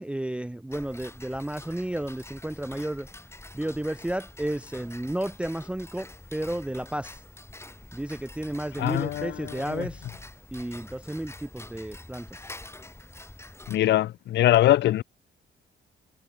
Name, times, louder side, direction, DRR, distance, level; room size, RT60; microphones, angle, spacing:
voice 1, 0.0-3.1 3.5-7.2 7.9-10.1 10.5-12.5, right 1 dB, 5° right, 0.5 m, -32 dB
Tick-tock, 0.7-13.8, left 2 dB, 15° left, 4.1 m, -46 dB
voice 2, 8.8-9.9 13.7-15.0, left 13 dB, 60° left, 0.5 m, -23 dB
cardioid pair, 90°, 20 cm